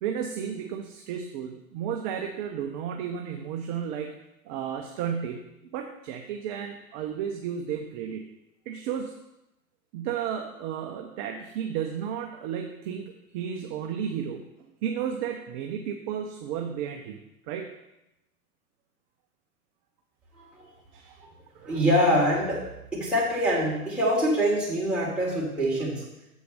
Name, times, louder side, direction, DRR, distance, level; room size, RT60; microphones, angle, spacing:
voice 1, 0.0-4.1 4.5-5.5 5.7-8.2 8.7-9.1 9.9-14.4 14.8-17.2 17.5-17.7 20.9-21.3 21.5-21.8, right 8 dB, 30° right, 4 dB, 0.6 m, -33 dB
voice 2, 20.4-20.7 21.6-22.6 22.9-26.0, equal, ahead, -7 dB, 3.2 m, -24 dB
7.2 x 5.0 x 6.5 m, 0.89 s
hypercardioid pair, 120°, 46 cm